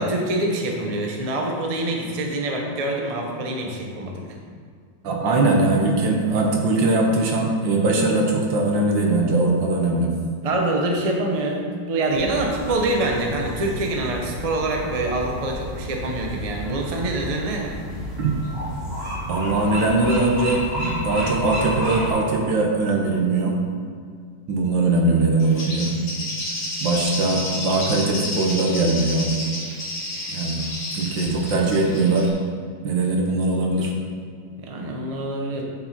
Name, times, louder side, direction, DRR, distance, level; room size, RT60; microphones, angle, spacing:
voice 1, 0.0-4.3 10.4-17.7 34.6-35.6, right 2 dB, 30° right, 1 dB, 0.6 m, -25 dB
voice 2, 5.0-10.1 18.2-18.3 19.3-23.6 24.5-25.9 26.8-29.3 30.3-30.6 30.9-32.3 32.8-33.9, right 2 dB, 75° right, 0 dB, 1.8 m, -21 dB
sound 1, 12.1-22.1, equal, 50° right, 2.6 m, -31 dB
Bird, 25.4-32.3, left 1 dB, 50° left, 2.4 m, -31 dB
7.4 x 7.3 x 4.2 m, 2.1 s
omnidirectional pair, 2.1 m